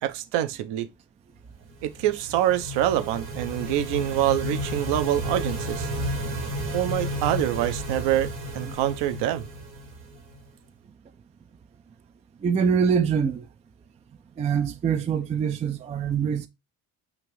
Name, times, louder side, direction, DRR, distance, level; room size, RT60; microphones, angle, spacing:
voice 1, 0.0-0.9 1.8-5.9 6.7-8.3 8.5-9.5, right 12 dB, 55° right, 0.6 m, -25 dB
sound 1, 1.7-10.5, equal, 90° right, 1.2 m, -32 dB
voice 2, 12.4-13.5 14.4-16.5, right 7 dB, 15° right, 0.3 m, -24 dB
6.6 x 2.5 x 3.1 m
hypercardioid pair, 60°, 50 cm